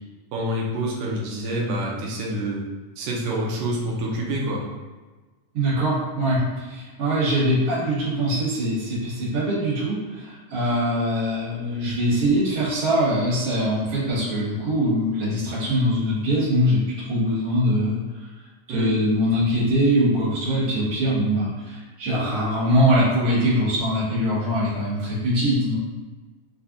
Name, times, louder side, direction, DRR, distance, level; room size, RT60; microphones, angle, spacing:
voice 1, 0.3-2.7 3.0-4.7 18.7-18.9, right 1 dB, 90° right, -3 dB, 2.2 m, -27 dB
voice 2, 5.5-16.8 17.1-18.3 18.7-25.8, equal, 65° right, -9 dB, 2.8 m, -22 dB
5.8 x 2.2 x 2.6 m, 1.3 s
omnidirectional pair, 3.7 m